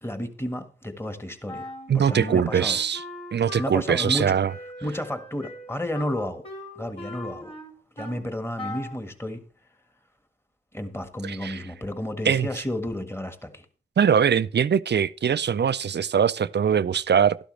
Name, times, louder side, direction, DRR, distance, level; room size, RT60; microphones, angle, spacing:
voice 1, 0.0-2.8 3.6-4.4 4.8-6.5 6.7-7.5 8.0-9.4 10.7-13.6, left 1 dB, 10° left, 1.7 m, -32 dB
Wind instrument woodwind instrument, 1.5-8.3 8.6-9.0, left 1 dB, 30° left, 3.3 m, -40 dB
voice 2, 1.9-3.0 3.3-4.5 11.2-11.6 12.2-12.5 14.0-17.4, right 7 dB, 60° right, 0.4 m, -22 dB
12.5 x 11.5 x 3.3 m
cardioid pair, 50°, 20 cm